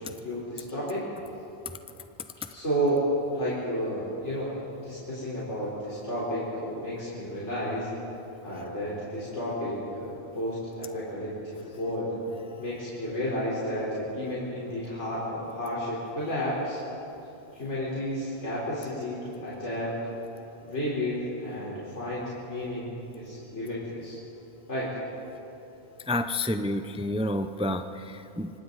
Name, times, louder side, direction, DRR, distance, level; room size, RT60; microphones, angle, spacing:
voice 1, 0.0-1.0 2.5-7.9 8.4-12.2 12.6-16.8 17.5-19.9 20.6-22.9 23.2-24.2 24.7-24.9, equal, 90° left, -9 dB, 4.6 m, -32 dB
voice 2, 26.1-28.5, left 1 dB, 5° right, 8 dB, 0.5 m, -29 dB
26.0 x 25.0 x 4.1 m, 2.9 s
omnidirectional pair, 1.2 m